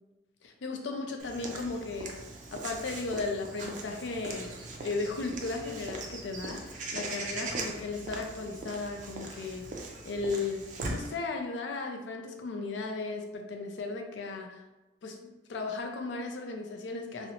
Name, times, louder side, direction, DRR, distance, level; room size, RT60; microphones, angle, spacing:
voice 1, 0.4-2.2 2.5-9.7 10.0-14.6 15.0-17.3, left 3 dB, 75° left, 3 dB, 0.4 m, -36 dB
Walk footsteps / Bird vocalization bird call bird song, 1.2-11.1, right 3 dB, 40° right, 0.3 m, -40 dB
2.7 x 2.0 x 2.8 m, 1.1 s
head